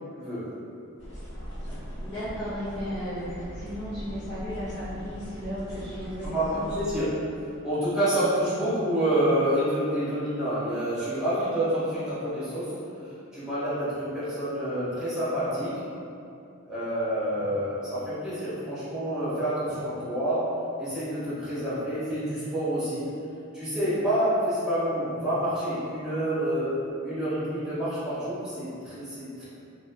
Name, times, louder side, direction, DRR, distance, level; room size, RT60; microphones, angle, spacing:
voice 1, 0.1-0.5 6.2-7.1 7.6-15.8 16.7-20.5 20.8-23.1 23.5-29.4, right 1 dB, 5° right, -13 dB, 1.2 m, -28 dB
sound 1, 1.0-7.0, equal, 50° left, 1.5 m, -40 dB
voice 2, 2.0-3.3 3.5-6.7 17.4-17.5, equal, 20° left, -14 dB, 0.5 m, -35 dB
2.9 x 2.6 x 2.3 m, 2.6 s
head